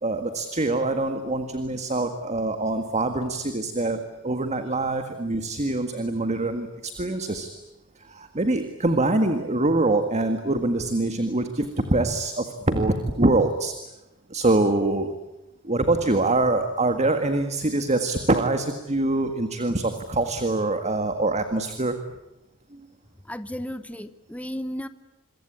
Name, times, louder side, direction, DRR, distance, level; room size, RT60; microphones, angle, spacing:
voice 1, 0.0-7.5 8.0-13.7 14.3-15.1 15.6-22.0 22.7-22.9, right 2 dB, 30° right, 8 dB, 1.8 m, -24 dB
voice 2, 23.2-24.9, equal, 5° left, 12 dB, 1.0 m, -34 dB
27.0 x 23.5 x 8.8 m, 0.97 s
head